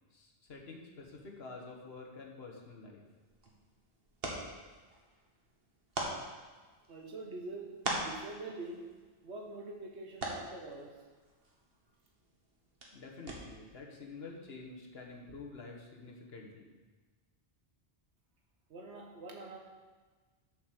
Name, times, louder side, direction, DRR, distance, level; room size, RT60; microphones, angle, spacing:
voice 1, 0.1-3.0 12.9-16.7, left 3 dB, 65° left, 0 dB, 1.5 m, -48 dB
sound 1, 3.0-13.8, right 2 dB, 60° right, 1.6 m, -44 dB
voice 2, 6.9-8.8 9.2-11.0 18.7-19.6, right 2 dB, 85° right, 0 dB, 1.4 m, -45 dB
7.4 x 5.3 x 6.6 m, 1.3 s
omnidirectional pair, 1.1 m